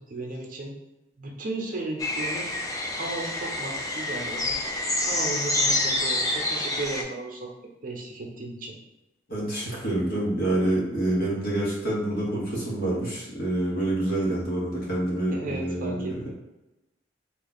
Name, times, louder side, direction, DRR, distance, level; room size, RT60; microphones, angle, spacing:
voice 1, 0.1-0.8 1.2-2.5 2.9-7.5 7.8-8.7 15.3-16.3, right 2 dB, 50° right, 0 dB, 0.8 m, -35 dB
sound 1, 2.0-7.0, left 1 dB, 20° left, 0.5 m, -27 dB
voice 2, 9.3-16.1, right 1 dB, 55° left, -5 dB, 1.3 m, -27 dB
3.1 x 2.3 x 4.0 m, 0.96 s
head